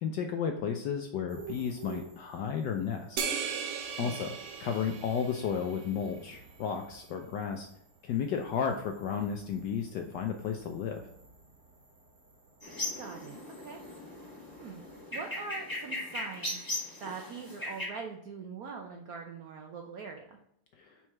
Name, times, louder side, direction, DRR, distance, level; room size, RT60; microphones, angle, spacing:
voice 1, 0.0-3.2 4.0-4.3 4.6-7.7 8.0-11.0 20.8-20.9, left 7 dB, 75° left, 4 dB, 1.0 m, -33 dB
sound 1, 1.3-15.0, right 5 dB, 45° right, 1.9 m, -53 dB
sound 2, 3.2-5.9, right 6 dB, 65° right, 1.2 m, -37 dB
sound 3, 12.6-17.9, left 1 dB, 15° left, 1.0 m, -38 dB
voice 2, 13.0-13.8 14.6-14.8 15.1-16.6 17.0-20.4, right 5 dB, 85° right, 2 dB, 0.8 m, -42 dB
4.6 x 4.3 x 5.7 m, 0.73 s
omnidirectional pair, 2.4 m